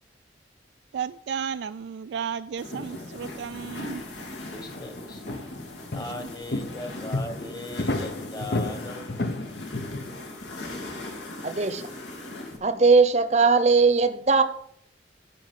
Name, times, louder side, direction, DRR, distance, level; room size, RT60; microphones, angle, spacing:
voice 1, 0.9-4.0 6.0-6.1, right 7 dB, 75° right, 0.3 m, -33 dB
sound 1, 2.6-12.6, left 2 dB, 85° left, 2.4 m, -39 dB
sound 2, 4.3-5.0 5.3-10.4, left 2 dB, 60° left, 0.9 m, -32 dB
voice 2, 4.5-5.2 5.9-9.3, left 2 dB, 25° left, 1.3 m, -38 dB
voice 3, 11.4-11.9 12.6-14.4, right 4 dB, 40° right, 0.8 m, -19 dB
14.0 x 5.3 x 5.9 m
head